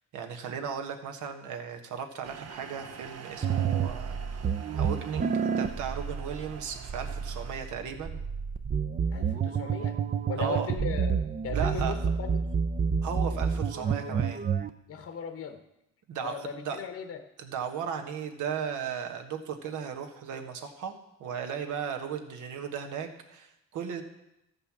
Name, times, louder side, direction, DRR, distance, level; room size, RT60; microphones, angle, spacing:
voice 1, 0.1-4.4 4.8-8.2 10.4-10.7 11.5-12.0 13.0-14.4 16.1-16.8 17.4-20.9 21.2-24.0, right 7 dB, 80° right, 5 dB, 1.4 m, -36 dB
sound 1, 2.2-7.6, right 7 dB, 55° right, 1.0 m, -46 dB
sound 2, 3.4-14.7, right 6 dB, 30° right, 0.5 m, -29 dB
voice 2, 9.1-10.0 10.3-12.4 14.9-15.6 16.2-17.2, left 6 dB, 50° left, 7 dB, 1.0 m, -38 dB
13.5 x 5.5 x 7.2 m, 0.87 s
cardioid pair, 90°, 30 cm